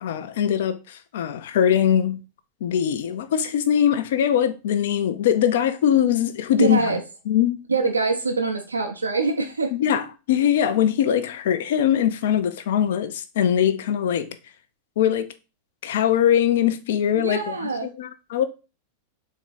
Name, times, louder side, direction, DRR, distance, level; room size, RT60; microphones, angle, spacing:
voice 1, 0.0-2.2 2.6-7.0 7.3-7.6 9.7-14.4 15.0-15.3 15.8-18.4, left 9 dB, 55° left, 0.4 m, -22 dB
voice 2, 6.6-7.0 7.7-9.7 17.1-17.9, right 3 dB, 75° right, 0.5 m, -24 dB
3.7 x 2.6 x 4.0 m
figure-of-eight pair, 90°, 0 cm